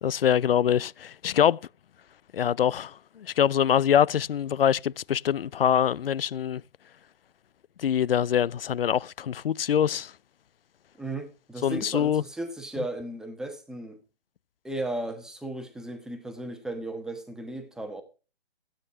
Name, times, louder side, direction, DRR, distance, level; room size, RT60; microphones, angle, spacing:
voice 1, 0.0-1.6 2.3-6.6 7.8-10.1 11.6-12.2, left 9 dB, 65° left, 0.5 m, -24 dB
voice 2, 11.0-14.0 14.6-18.0, right 1 dB, ahead, 1.1 m, -35 dB
15.5 x 8.9 x 4.8 m
hypercardioid pair, 150°, 31 cm